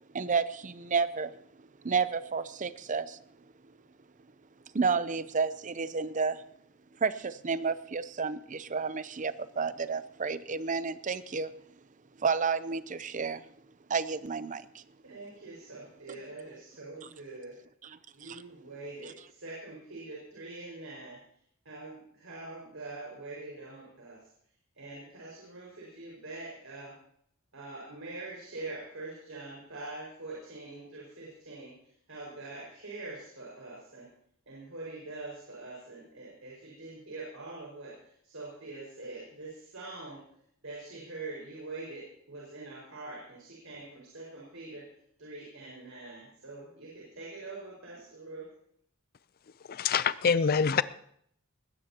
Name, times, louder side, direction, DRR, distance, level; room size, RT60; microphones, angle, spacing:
voice 1, 0.1-1.4 1.8-3.2 4.7-6.4 7.0-11.5 12.2-13.4 13.9-14.8 17.8-17.9 18.2-18.4, right 5 dB, 40° right, 14 dB, 0.6 m, -31 dB
voice 2, 15.0-17.6 18.1-21.2 21.7-24.3 24.8-27.0 27.5-34.1 34.5-40.2 40.6-44.9 45.2-48.5, right 2 dB, 75° right, -5 dB, 5.2 m, -44 dB
voice 3, 49.7-50.8, left 6 dB, 45° left, 16 dB, 0.5 m, -25 dB
20.5 x 16.0 x 2.9 m, 0.68 s
head